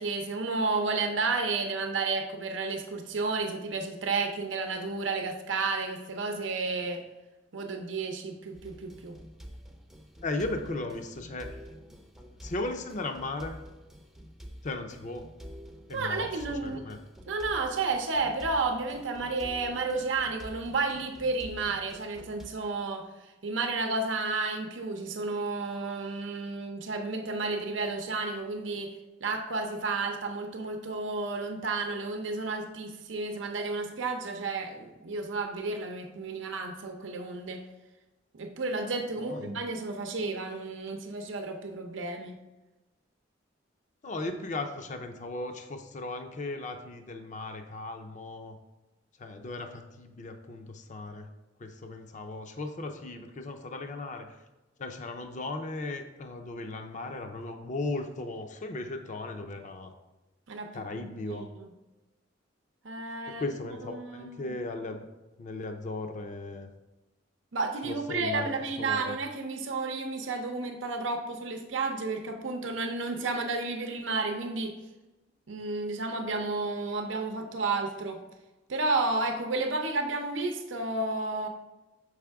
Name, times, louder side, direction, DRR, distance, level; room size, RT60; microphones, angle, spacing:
voice 1, 0.0-7.0 7.5-9.2 15.9-16.8 17.3-23.0 23.4-28.9 29.2-37.6 38.3-42.3 60.5-61.7 62.8-63.6 63.8-64.5 67.5-74.7 75.5-78.2 78.7-81.5, right 3 dB, 85° right, 4 dB, 0.7 m, -32 dB
sound 1, 8.5-22.5, equal, ahead, 0.5 m, -48 dB
voice 2, 10.2-11.5 12.4-13.6 14.6-15.2 15.9-17.0 39.2-39.5 44.0-48.5 49.2-51.3 51.6-54.3 54.8-59.9 60.7-61.5 63.3-65.1 65.4-66.7 67.8-69.1, left 2 dB, 40° left, 6 dB, 0.5 m, -37 dB
6.5 x 4.8 x 3.5 m, 1.1 s
head